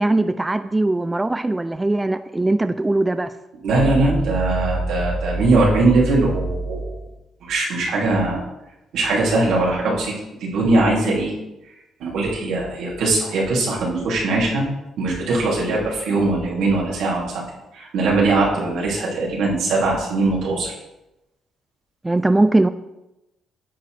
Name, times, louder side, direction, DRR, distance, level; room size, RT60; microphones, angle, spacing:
voice 1, 0.0-3.3 4.0-4.3 22.0-22.7, right 2 dB, 15° right, 11 dB, 0.3 m, -20 dB
voice 2, 3.6-7.0 7.4-8.4 8.9-10.1 10.4-11.3 12.0-14.6 15.0-17.4 17.7-20.8, right 2 dB, 80° right, -4 dB, 2.8 m, -20 dB
10.0 x 6.8 x 3.3 m, 0.95 s
cardioid pair, 90°, 0 cm